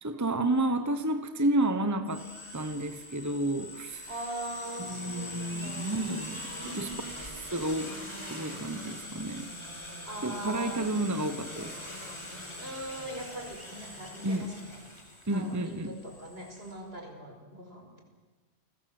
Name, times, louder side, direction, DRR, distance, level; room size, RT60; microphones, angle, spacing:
voice 1, 0.0-2.2 2.5-4.1 4.8-8.0 8.3-9.5 10.2-11.8 14.2-14.5 15.3-16.0, right 1 dB, 15° right, 10 dB, 1.1 m, -31 dB
sound 1, 2.1-16.7, left 1 dB, 25° left, 4.5 m, -43 dB
voice 2, 4.1-6.2 6.5-7.1 10.1-10.9 12.6-14.8 15.3-18.0, right 1 dB, 65° right, 3 dB, 5.4 m, -41 dB
29.5 x 20.5 x 7.8 m, 1.3 s
omnidirectional pair, 1.1 m